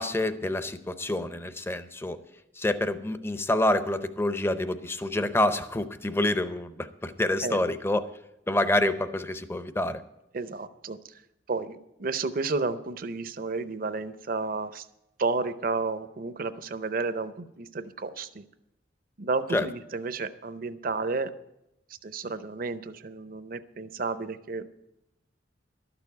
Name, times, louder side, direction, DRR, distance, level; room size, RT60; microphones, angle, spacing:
voice 1, 0.0-2.2 2.6-8.1 8.5-10.0 19.5-19.7, left 1 dB, 15° left, 11 dB, 0.6 m, -27 dB
voice 2, 10.3-11.0 11.5-14.9 15.2-18.4 19.2-21.3 22.0-24.7, right 3 dB, 50° right, 12 dB, 0.6 m, -32 dB
12.5 x 6.9 x 8.3 m, 0.87 s
head